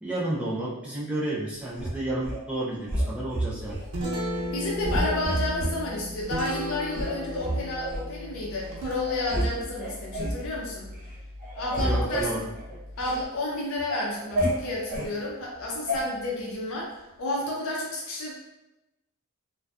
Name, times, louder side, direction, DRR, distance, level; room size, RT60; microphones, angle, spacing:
voice 1, 0.0-3.8 11.8-12.5, right 1 dB, 5° right, -7 dB, 0.3 m, -31 dB
sound 1, 1.7-2.4 2.9-3.8 4.3-4.5 4.8-5.8 6.3-6.4 6.9-8.0 8.6-8.7 9.0-9.5 9.8-10.4 10.9-11.1 11.4-13.2 13.6-15.1 15.9-16.0, right 1 dB, 40° right, 0.7 m, -30 dB
Guitar, 3.5-13.2, equal, 85° right, 0.7 m, -36 dB
voice 2, 4.5-10.8 11.5-12.3 13.0-18.3, left 2 dB, 65° left, -3 dB, 0.5 m, -31 dB
2.5 x 2.1 x 2.3 m, 0.97 s
head